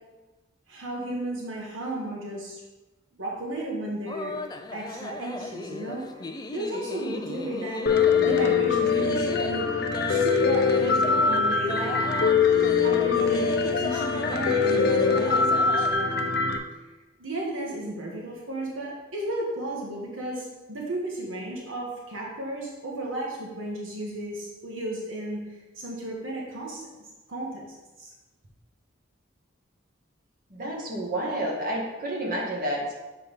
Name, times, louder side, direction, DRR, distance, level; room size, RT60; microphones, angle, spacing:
voice 1, 0.7-2.6 3.1-4.4 4.7-7.9 8.2-9.7 10.1-12.0 12.8-13.5 13.7-16.2 17.2-28.1, right 1 dB, 90° right, -3 dB, 1.5 m, -34 dB
sound 1, 4.1-15.9, left 2 dB, 20° left, 0.4 m, -36 dB
Piano, 7.9-16.6, left 5 dB, 55° left, 0.6 m, -23 dB
voice 2, 30.5-32.9, right 1 dB, 45° right, -2 dB, 1.7 m, -30 dB
7.1 x 4.2 x 5.3 m, 1.1 s
head